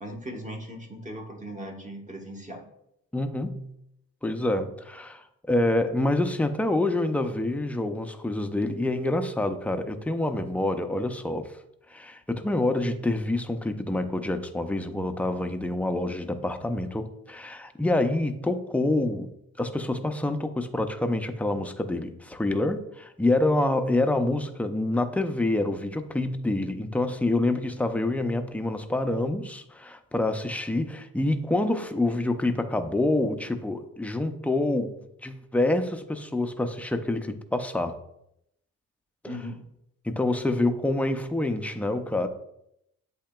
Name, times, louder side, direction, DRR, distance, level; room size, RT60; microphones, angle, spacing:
voice 1, 0.0-2.7 32.1-32.2 39.2-39.6, equal, 20° right, 2 dB, 1.1 m, -38 dB
voice 2, 3.1-3.7 4.2-11.5 11.9-19.3 19.6-34.9 35.2-38.0 39.2-39.4 40.0-42.3, left 2 dB, 5° left, 7 dB, 0.4 m, -27 dB
8.3 x 2.8 x 2.2 m, 0.79 s
cardioid pair, 70°, 33 cm